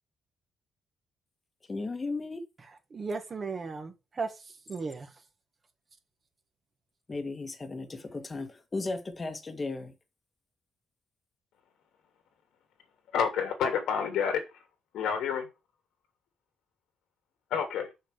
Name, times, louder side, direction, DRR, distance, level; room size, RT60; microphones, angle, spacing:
voice 1, 1.7-2.4 7.1-9.9, left 3 dB, 20° left, 1.6 m, -35 dB
voice 2, 2.9-5.1, right 4 dB, 30° right, 1.7 m, -36 dB
voice 3, 13.1-14.4 14.9-15.4 17.5-17.9, left 7 dB, 80° left, 2.7 m, -28 dB
6.4 x 6.4 x 6.6 m
cardioid pair, 165°, 0 cm